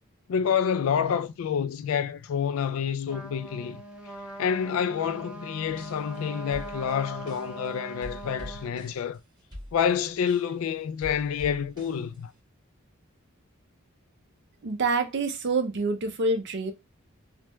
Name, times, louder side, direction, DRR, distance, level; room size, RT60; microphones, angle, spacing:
voice 1, 0.3-3.8 4.4-9.2 9.7-12.3, left 7 dB, 75° left, 0.3 m, -28 dB
Trumpet, 3.1-8.7, right 1 dB, 5° right, 0.7 m, -41 dB
sound 1, 5.6-6.2 6.5-7.7 8.0-10.7 11.0-12.4, equal, 20° right, 1.5 m, -45 dB
voice 2, 14.6-16.7, right 3 dB, 55° right, 0.5 m, -27 dB
3.3 x 2.1 x 3.0 m
head